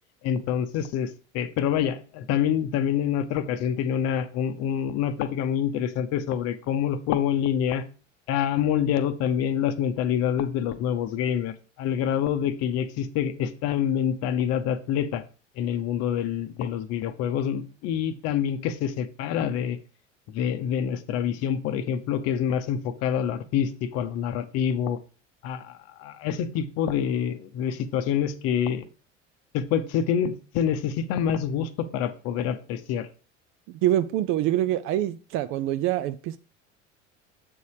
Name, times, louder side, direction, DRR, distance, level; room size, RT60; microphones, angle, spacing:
voice 1, 0.2-7.8 8.3-15.2 15.6-19.8 20.3-25.0 25.4-28.9 29.5-33.1, left 9 dB, 45° left, 11 dB, 0.8 m, -26 dB
voice 2, 33.7-36.4, right 13 dB, 35° right, 13 dB, 0.4 m, -25 dB
7.7 x 4.0 x 4.8 m, 0.36 s
figure-of-eight pair, 65°, 37 cm